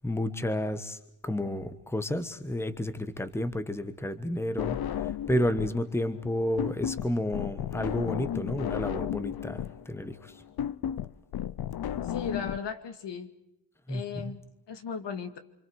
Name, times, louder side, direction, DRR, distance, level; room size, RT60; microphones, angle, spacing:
voice 1, 0.0-10.3 13.9-14.3, left 1 dB, 5° left, 11 dB, 1.3 m, -31 dB
sound 1, 4.6-5.8 6.1-12.6, left 10 dB, 55° left, 0.8 m, -33 dB
voice 2, 12.0-13.3 13.9-14.4 14.7-15.4, left 6 dB, 75° left, 9 dB, 2.2 m, -36 dB
29.0 x 26.5 x 4.8 m, 0.85 s
wide cardioid pair, 150°, 43 cm